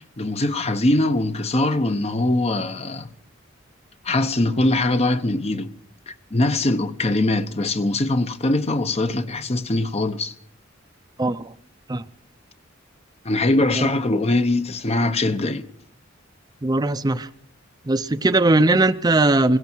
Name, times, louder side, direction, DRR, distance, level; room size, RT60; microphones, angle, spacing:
voice 1, 0.0-3.1 4.0-5.7 6.1-10.3 13.2-15.7, left 2 dB, 30° left, 0.9 m, -22 dB
voice 2, 11.2-11.5 11.9-12.0 13.7-13.9 16.6-17.3 17.8-19.6, right 2 dB, 20° right, 0.5 m, -19 dB
17.5 x 17.0 x 4.5 m
head